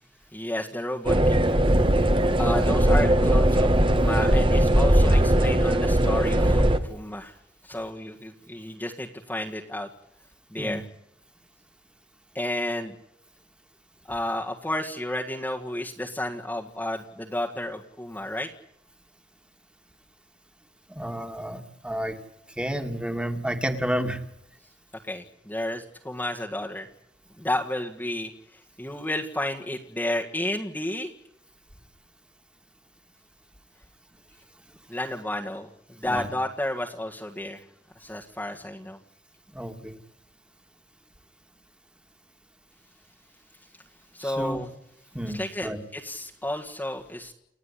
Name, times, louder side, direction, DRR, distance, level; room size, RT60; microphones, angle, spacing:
voice 1, 0.3-1.8 2.4-7.4 7.6-9.9 10.5-10.8 12.4-12.9 14.1-18.5 25.0-26.9 27.4-31.1 34.9-37.6 38.0-39.0 44.1-44.7 45.2-47.3, left 1 dB, 10° left, 0 dB, 1.7 m, -32 dB
sound 1, 1.1-6.8, right 1 dB, 30° right, 1.5 m, -20 dB
voice 2, 20.9-22.2 22.6-24.2 36.0-36.3 39.5-39.9 44.2-44.6 45.1-45.8, equal, 5° right, 6 dB, 2.3 m, -30 dB
30.0 x 15.0 x 10.0 m, 0.81 s
head